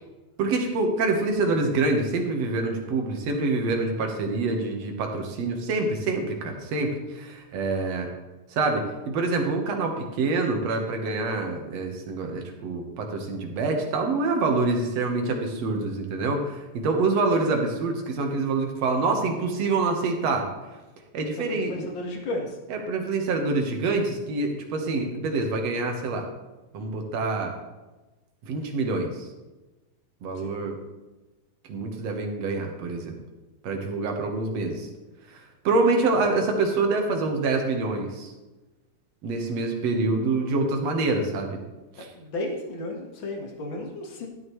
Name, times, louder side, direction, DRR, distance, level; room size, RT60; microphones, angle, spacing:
voice 1, 0.4-8.1 8.5-20.5 21.1-21.9 22.7-26.3 26.7-27.6 28.4-29.3 30.2-30.8 31.7-33.2 33.6-34.9 35.3-38.3 39.2-41.6 42.0-42.1, right 3 dB, 65° right, 3 dB, 2.3 m, -26 dB
voice 2, 21.4-22.6 30.4-30.5 42.0-44.3, left 1 dB, 45° left, 1 dB, 2.1 m, -34 dB
12.5 x 9.5 x 3.2 m, 1.1 s
omnidirectional pair, 3.5 m